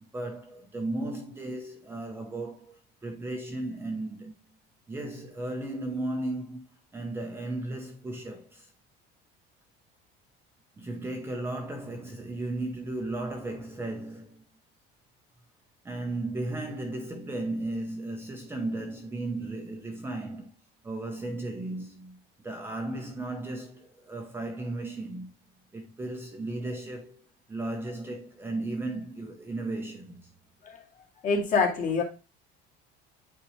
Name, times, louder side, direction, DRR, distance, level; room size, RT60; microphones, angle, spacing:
voice 1, 0.0-4.4 4.9-6.6 6.9-8.7 10.8-14.4 15.8-20.5 20.8-25.3 25.7-30.3, right 2 dB, 10° right, 0.8 m, -35 dB
voice 2, 31.2-32.0, left 4 dB, 35° left, 2.1 m, -25 dB
8.8 x 4.5 x 3.1 m
cardioid pair, 175°, 21 cm